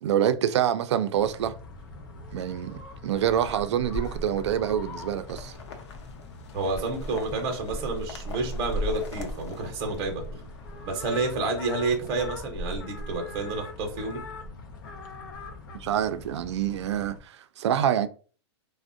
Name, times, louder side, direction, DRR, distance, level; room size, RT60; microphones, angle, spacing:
voice 1, 0.0-1.6 2.3-5.5 15.8-18.1, right 10 dB, 90° right, 0.4 m, -26 dB
sound 1, 1.1-17.2, left 1 dB, 50° left, 0.6 m, -39 dB
sound 2, 3.1-11.1, left 4 dB, 90° left, 0.6 m, -47 dB
voice 2, 6.5-10.4 10.9-14.2, right 3 dB, 25° right, 0.6 m, -29 dB
3.4 x 2.1 x 2.5 m
supercardioid pair, 170°, 14 cm